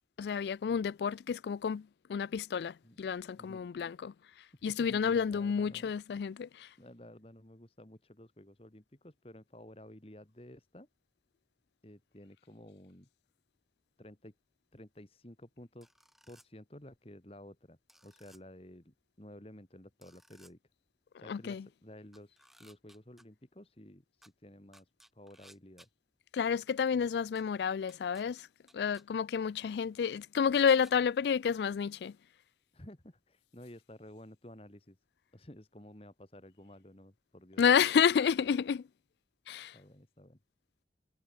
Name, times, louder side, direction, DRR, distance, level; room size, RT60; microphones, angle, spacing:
voice 1, 0.2-4.1 4.6-6.7 21.3-21.6 26.3-28.5 28.7-32.1 37.6-38.8 39.5-39.7, left 7 dB, 75° left, 0.3 m, -30 dB
voice 2, 3.4-3.7 4.5-5.9 6.8-10.9 11.8-13.1 14.0-14.3 14.7-15.9 16.3-20.6 21.2-25.9 32.7-35.0 35.3-37.6 39.7-40.4, left 1 dB, 35° left, 2.0 m, -53 dB
sound 1, 15.8-16.5 17.9-18.4 20.0-20.5 22.1-23.2 24.2-24.3 24.7-25.9 27.4-27.5 27.9-28.2 28.7-29.0 30.5-30.9, equal, ahead, 1.3 m, -60 dB
head